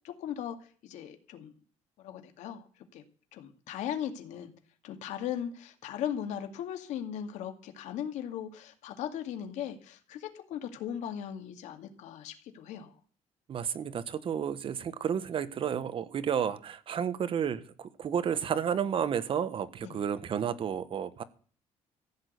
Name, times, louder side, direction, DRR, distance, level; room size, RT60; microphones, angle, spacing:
voice 1, 0.0-1.5 2.0-2.7 2.9-3.0 3.3-4.5 4.8-12.9 19.8-20.0, left 9 dB, 90° left, 2.2 m, -38 dB
voice 2, 13.5-21.2, right 8 dB, 50° right, 1.3 m, -31 dB
15.5 x 6.3 x 9.5 m
cardioid pair, 130°, 12 cm